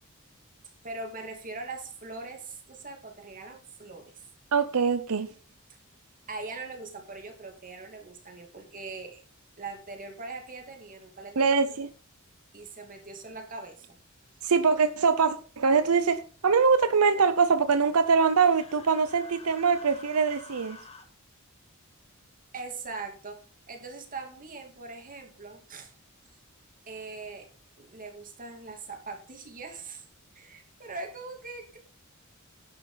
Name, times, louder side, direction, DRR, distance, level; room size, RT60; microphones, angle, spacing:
voice 1, 0.8-4.2 6.3-9.2 9.6-11.5 12.5-14.0 22.5-23.4 23.7-25.9 26.9-27.5 27.8-30.0 30.3-31.8, right 3 dB, 40° right, 2.7 m, -41 dB
voice 2, 4.5-5.3 11.4-11.9 14.4-20.8, right 5 dB, 85° right, 0.7 m, -23 dB
Human voice, 18.2-21.0, left 3 dB, 30° left, 2.0 m, -49 dB
11.0 x 9.5 x 3.9 m
head